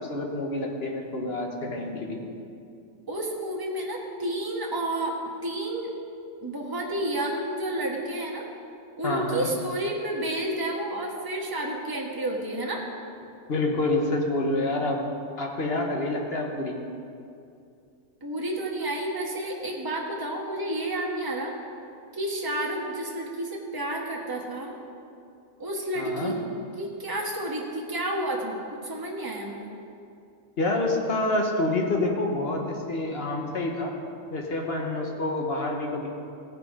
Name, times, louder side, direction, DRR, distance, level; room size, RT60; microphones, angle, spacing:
voice 1, 0.1-2.2 9.0-9.5 13.5-15.0 15.4-16.7 26.0-26.3 30.6-33.9 34.3-36.1, left 2 dB, 45° left, 1 dB, 1.4 m, -27 dB
voice 2, 3.1-5.9 6.4-8.5 9.0-12.8 18.2-21.5 22.1-24.7 25.6-26.3 26.8-28.6 28.8-29.7, right 1 dB, 15° right, -2 dB, 1.3 m, -30 dB
17.0 x 6.1 x 4.9 m, 2.5 s
omnidirectional pair, 1.5 m